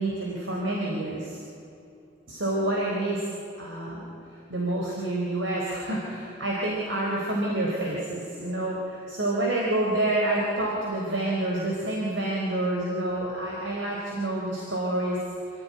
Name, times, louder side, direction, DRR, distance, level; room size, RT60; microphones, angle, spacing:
voice 1, 0.0-1.4 2.3-3.2 3.6-4.1 4.5-15.2, right 1 dB, 85° right, -3 dB, 4.0 m, -28 dB
27.0 x 15.5 x 9.7 m, 2.8 s
head